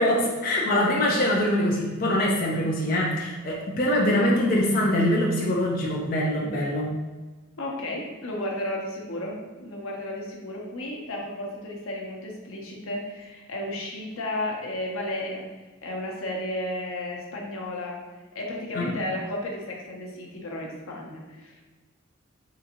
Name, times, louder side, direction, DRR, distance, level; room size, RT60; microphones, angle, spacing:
voice 1, 0.0-7.0 18.7-18.9, left 1 dB, 45° left, -2 dB, 0.4 m, -23 dB
voice 2, 7.6-15.4 15.8-18.0 18.3-21.6, left 1 dB, 90° left, -1 dB, 0.7 m, -33 dB
3.7 x 2.6 x 2.8 m, 1.3 s
head